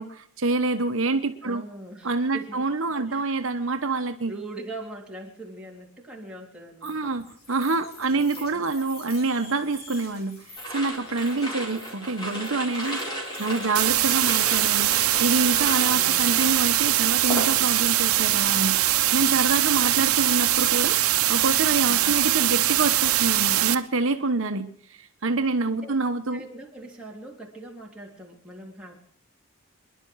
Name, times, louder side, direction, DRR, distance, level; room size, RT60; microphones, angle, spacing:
voice 1, 0.0-1.6 2.0-4.3 6.8-21.0 21.3-26.4, right 3 dB, 65° right, 7 dB, 1.0 m, -27 dB
voice 2, 1.4-3.4 4.3-7.2 8.0-8.7 15.8-16.5 19.5-20.0 21.8-22.3 25.8-25.9 26.3-29.0, right 2 dB, 5° right, -3 dB, 3.5 m, -42 dB
sound 1, 6.8-14.4, left 3 dB, 45° left, 3.8 m, -48 dB
sound 2, 10.6-18.0 18.3-18.7, right 1 dB, 20° left, 4.3 m, -34 dB
sound 3, 13.7-23.7, right 14 dB, 80° right, 0.9 m, -22 dB
26.0 x 11.0 x 4.7 m, 0.63 s
head